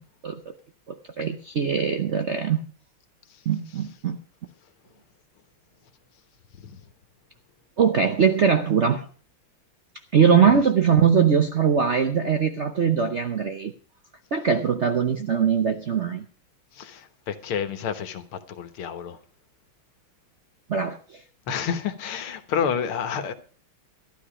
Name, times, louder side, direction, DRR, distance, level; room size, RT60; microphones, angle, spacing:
voice 1, 0.9-2.6 3.5-4.2 7.8-9.1 10.1-13.7 14.3-16.2 20.7-21.2, right 7 dB, 60° right, 0.7 m, -21 dB
voice 2, 16.8-19.2 21.5-23.3, left 7 dB, 85° left, 2.1 m, -29 dB
12.5 x 12.0 x 5.0 m
omnidirectional pair, 2.3 m